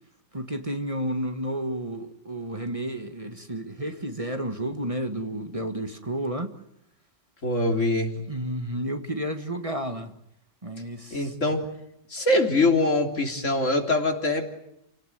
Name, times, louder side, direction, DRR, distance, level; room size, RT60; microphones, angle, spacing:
voice 1, 0.3-6.5 8.3-10.1 10.6-11.3, right 1 dB, 25° right, 1.8 m, -31 dB
voice 2, 7.4-8.1 11.1-11.7 12.1-14.5, left 2 dB, 80° left, 3.7 m, -23 dB
29.5 x 17.5 x 9.2 m
omnidirectional pair, 1.3 m